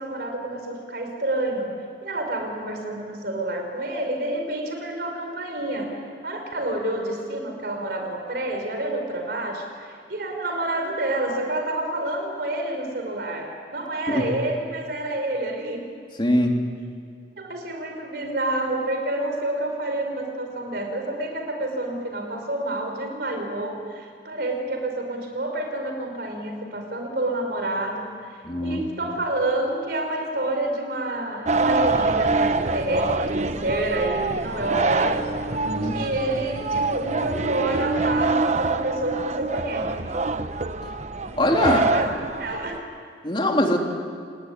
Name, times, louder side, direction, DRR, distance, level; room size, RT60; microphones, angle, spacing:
voice 1, 0.0-1.7 2.0-15.9 17.4-35.6 35.8-39.9 41.6-42.8, right 1 dB, 60° right, 3 dB, 4.8 m, -28 dB
voice 2, 16.2-16.6 28.4-28.8 35.6-36.0 41.4-41.8 43.2-43.8, left 1 dB, 30° left, 1 dB, 3.2 m, -22 dB
sound 1, 31.5-42.8, right 3 dB, 40° right, 1.0 m, -25 dB
28.5 x 19.5 x 9.9 m, 2.2 s
head